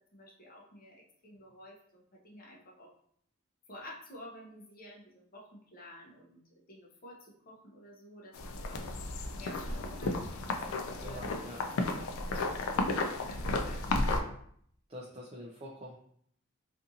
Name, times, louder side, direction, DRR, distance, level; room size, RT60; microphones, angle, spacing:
voice 1, 0.1-2.9 3.7-6.4 6.7-8.9 9.4-11.2 11.9-14.4, left 1 dB, 45° left, -2 dB, 0.7 m, -52 dB
sound 1, 8.3-14.2, left 2 dB, 80° left, 0.4 m, -33 dB
voice 2, 11.0-11.6 14.9-16.0, equal, 25° right, -3 dB, 0.3 m, -45 dB
2.5 x 2.4 x 2.7 m, 0.64 s
head